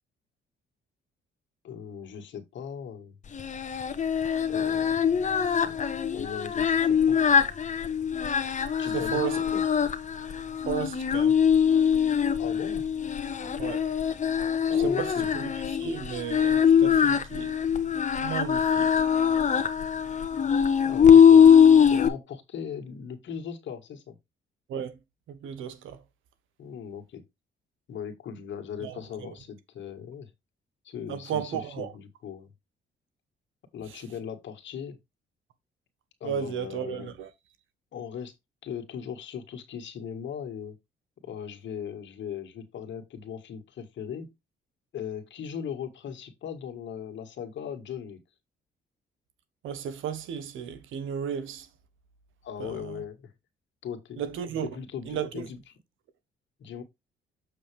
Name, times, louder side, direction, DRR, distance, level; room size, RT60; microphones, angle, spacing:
voice 1, 1.6-3.2 4.5-5.8 6.1-7.2 8.8-9.6 12.4-12.9 14.7-15.3 20.8-21.5 21.9-24.2 26.6-27.2 27.9-30.3 30.8-32.5 33.7-35.0 36.2-37.1 37.9-38.3 38.6-40.8 41.2-44.3 44.9-48.2 52.4-53.3 53.8-54.2 54.6-55.6 56.6-56.8, left 8 dB, 70° left, 1.9 m, -38 dB
Singing, 3.3-22.1, left 7 dB, 35° left, 1.2 m, -22 dB
voice 2, 8.9-9.4 10.6-11.4 13.6-13.8 14.7-15.5 15.8-17.6 18.2-19.0 24.7-24.9 25.3-26.0 28.8-29.3 31.1-31.9 33.9-34.0 36.2-37.3 49.6-51.7 52.6-53.0 54.2-54.7 55.1-55.5, right 9 dB, 80° right, 1.3 m, -34 dB
7.2 x 6.1 x 3.5 m
cardioid pair, 90°, 20 cm